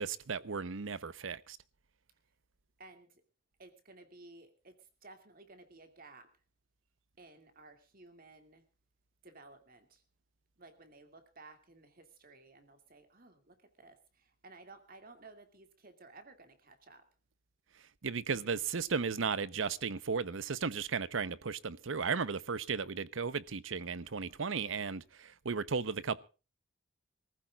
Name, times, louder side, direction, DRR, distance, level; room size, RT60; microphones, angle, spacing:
voice 1, 0.0-1.6 18.0-26.2, right 5 dB, 70° right, 0.7 m, -35 dB
voice 2, 2.8-3.2 3.6-6.3 7.2-8.6 9.2-10.0 10.6-17.1, right 3 dB, 45° right, 2.3 m, -56 dB
26.0 x 14.5 x 2.4 m
head